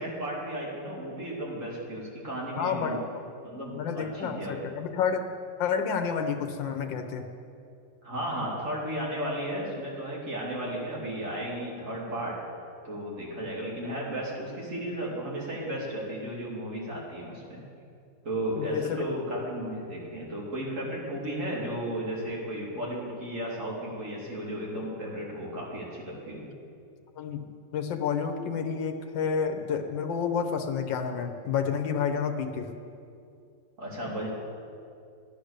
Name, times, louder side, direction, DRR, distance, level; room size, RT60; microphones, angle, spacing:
voice 1, 0.0-3.0 3.4-4.6 8.0-12.4 12.8-17.6 18.2-26.5 33.8-34.3, right 1 dB, 40° right, -4 dB, 3.1 m, -34 dB
voice 2, 2.6-3.2 3.7-5.2 5.6-7.3 18.6-19.0 27.2-32.7, left 6 dB, 80° left, 6 dB, 1.6 m, -30 dB
13.0 x 10.0 x 6.7 m, 2.5 s
omnidirectional pair, 2.0 m